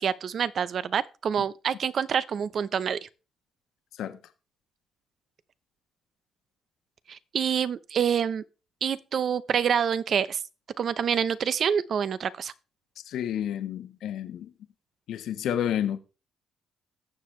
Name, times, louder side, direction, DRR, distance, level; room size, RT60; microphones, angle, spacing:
voice 1, 0.0-3.1 7.1-8.4 8.8-10.4 10.8-12.5, right 7 dB, 55° right, 0.7 m, -27 dB
voice 2, 13.1-14.5 15.1-16.0, left 10 dB, 80° left, 1.2 m, -30 dB
17.5 x 7.0 x 3.2 m
cardioid pair, 90°, 0 cm